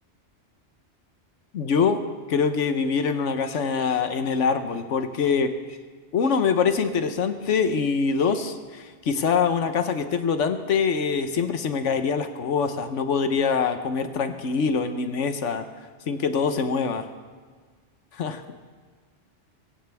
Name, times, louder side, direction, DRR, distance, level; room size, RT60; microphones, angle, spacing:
voice 1, 1.5-2.0 2.3-5.5 6.1-15.6 16.1-17.1 18.2-18.4, left 5 dB, 85° left, 8 dB, 1.3 m, -24 dB
24.0 x 15.5 x 3.5 m, 1.5 s
omnidirectional pair, 1.2 m